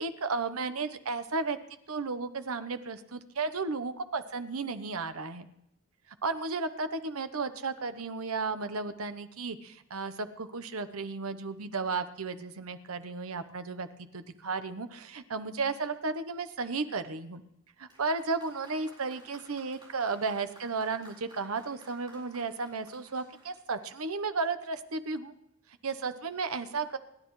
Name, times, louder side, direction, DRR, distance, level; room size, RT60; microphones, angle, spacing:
voice 1, 0.0-1.6 1.9-5.5 6.2-13.9 14.1-17.4 17.8-25.3 25.8-27.0, right 4 dB, 75° right, 10 dB, 1.0 m, -34 dB
Applause, 17.9-24.3, right 1 dB, 20° right, 4.3 m, -57 dB
28.0 x 10.5 x 3.2 m, 0.80 s
head